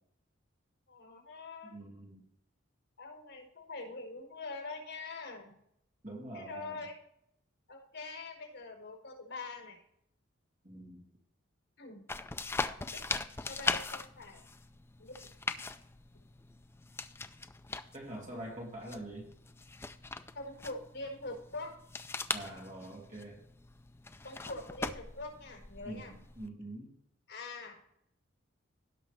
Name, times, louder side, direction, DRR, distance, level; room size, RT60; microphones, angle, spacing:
voice 1, 0.9-1.8 3.0-5.5 6.3-6.9 7.7-9.8 11.8-12.0 12.9-13.0 13.4-14.4 15.0-15.3 20.3-21.8 24.2-26.1 27.3-27.8, left 3 dB, 65° left, 0 dB, 4.8 m, -44 dB
voice 2, 1.6-2.2 6.0-6.9 10.6-11.0 17.9-19.3 22.3-23.4 25.9-27.0, right 1 dB, 35° right, -2 dB, 2.7 m, -45 dB
sound 1, 12.1-26.5, left 3 dB, 10° left, 0.3 m, -41 dB
16.5 x 6.2 x 3.4 m, 0.74 s
head